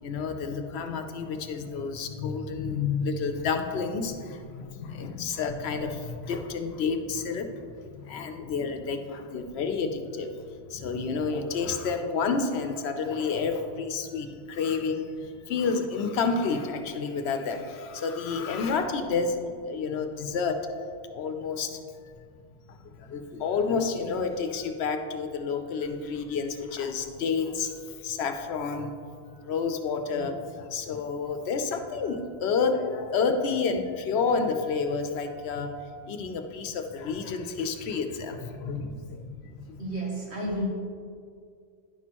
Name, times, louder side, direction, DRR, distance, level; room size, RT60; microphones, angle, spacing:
voice 1, 0.0-20.8 21.1-21.8 22.7-28.9 29.3-39.8, left 5 dB, 80° left, 6 dB, 0.9 m, -30 dB
voice 2, 39.8-40.7, equal, 90° right, -6 dB, 2.2 m, -31 dB
10.5 x 6.1 x 2.9 m, 2.2 s
omnidirectional pair, 1.1 m